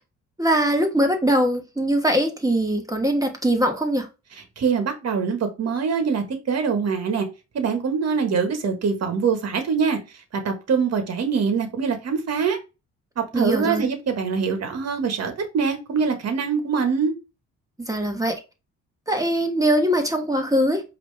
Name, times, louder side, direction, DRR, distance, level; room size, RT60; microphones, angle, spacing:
voice 1, 0.4-4.1 13.3-13.8 17.9-18.3 19.1-20.8, right 1 dB, 10° right, 1.2 m, -21 dB
voice 2, 4.6-7.2 7.5-10.0 10.4-12.6 13.2-17.1, right 5 dB, 55° right, 1.4 m, -23 dB
5.1 x 2.9 x 3.3 m
cardioid pair, 90°, 30 cm